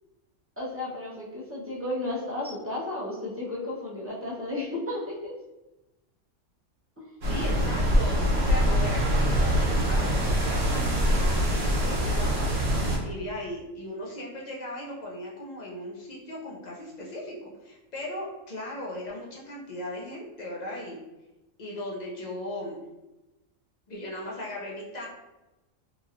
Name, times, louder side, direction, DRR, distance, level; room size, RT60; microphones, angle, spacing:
voice 1, 0.6-5.3 7.0-7.1, left 2 dB, 15° right, -7 dB, 0.4 m, -33 dB
sound 1, 7.2-13.0, equal, 55° right, 1.0 m, -24 dB
voice 2, 7.3-12.5 13.0-21.0 21.6-22.8 23.9-25.1, left 1 dB, 55° left, -3 dB, 0.4 m, -37 dB
2.9 x 2.8 x 2.4 m, 1.0 s
omnidirectional pair, 1.4 m